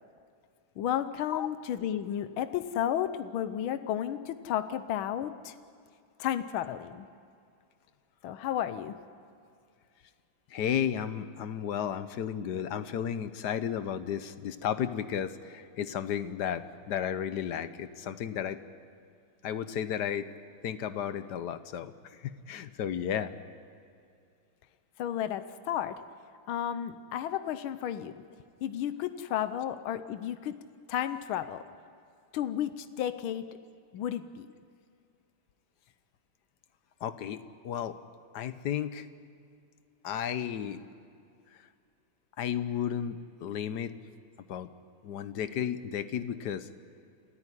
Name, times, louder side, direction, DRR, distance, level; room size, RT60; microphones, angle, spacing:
voice 1, 0.8-5.6 6.2-7.1 8.2-8.9 25.0-26.0 26.5-28.1 28.6-30.6 30.9-31.7 32.3-33.4 33.9-34.5, left 10 dB, 85° left, 11 dB, 1.6 m, -32 dB
voice 2, 10.5-18.6 19.4-20.3 20.6-23.3 37.0-38.0 38.3-39.1 40.0-40.8 42.4-43.9 44.5-44.7 45.0-46.7, left 9 dB, 60° left, 12 dB, 1.3 m, -33 dB
28.5 x 14.0 x 9.9 m, 2.4 s
omnidirectional pair, 2.2 m